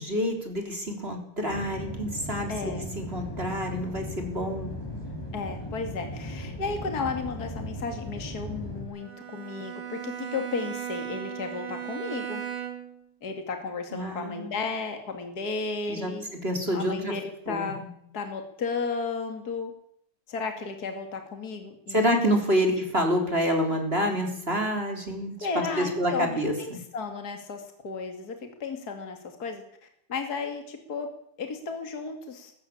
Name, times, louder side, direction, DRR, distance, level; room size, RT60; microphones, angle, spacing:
voice 1, 0.0-4.8 13.9-14.6 15.9-17.2 17.5-17.7 21.9-26.8, equal, 25° right, 3 dB, 4.1 m, -28 dB
sound 1, 1.5-8.8, left 1 dB, 10° left, 5.2 m, -37 dB
voice 2, 2.5-2.8 5.3-12.4 13.2-16.2 16.7-17.8 18.1-19.7 20.3-22.2 25.4-26.3 26.6-29.6 30.1-31.1 31.4-32.5, left 4 dB, 45° left, 6 dB, 2.8 m, -34 dB
Bowed string instrument, 9.0-13.1, right 10 dB, 80° right, 4.9 m, -36 dB
20.0 x 16.0 x 8.6 m, 0.70 s
omnidirectional pair, 2.3 m